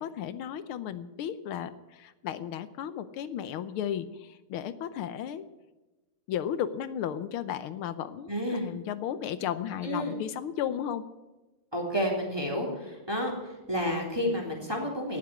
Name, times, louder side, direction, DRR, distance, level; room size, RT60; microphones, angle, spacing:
voice 1, 0.0-5.5 6.3-11.1, left 9 dB, 80° left, 14 dB, 1.7 m, -34 dB
voice 2, 8.3-8.7 9.8-10.2 11.7-15.2, equal, 10° right, -1 dB, 3.3 m, -30 dB
18.5 x 7.6 x 9.7 m, 1.1 s
omnidirectional pair, 2.3 m